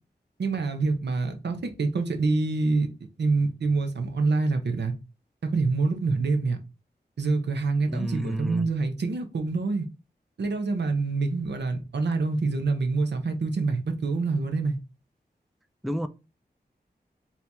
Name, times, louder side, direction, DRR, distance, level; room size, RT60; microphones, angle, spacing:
voice 1, 0.4-2.9 3.2-4.9 5.4-6.6 7.2-9.9 10.4-14.8, right 3 dB, 85° right, 0.8 m, -26 dB
voice 2, 7.9-8.7 15.8-16.1, equal, ahead, 0.4 m, -30 dB
4.4 x 2.9 x 3.5 m
wide cardioid pair, 80°, 17 cm